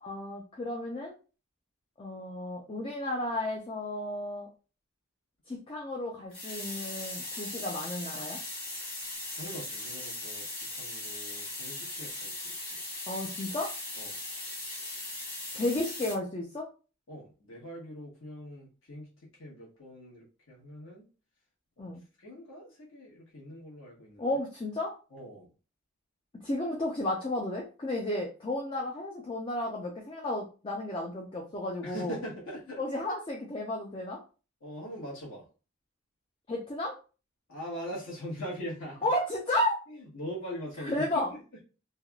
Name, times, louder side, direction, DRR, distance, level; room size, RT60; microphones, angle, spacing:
voice 1, 0.0-1.1 2.0-4.5 5.5-8.4 13.1-13.7 15.5-16.7 21.8-22.0 24.2-24.9 26.4-32.2 32.8-34.2 36.5-37.0 39.0-39.8 40.8-41.3, left 1 dB, 25° left, -2 dB, 0.4 m, -33 dB
sound 1, 6.3-16.1, left 2 dB, 45° left, 1.4 m, -39 dB
voice 2, 9.3-12.8 14.0-14.2 17.1-19.1 19.4-21.1 21.8-21.9 22.2-24.3 25.1-25.5 31.8-32.8 34.6-35.4 37.5-39.1 39.9-41.4, equal, 70° left, -4 dB, 1.3 m, -42 dB
3.3 x 2.3 x 2.3 m, 0.34 s
head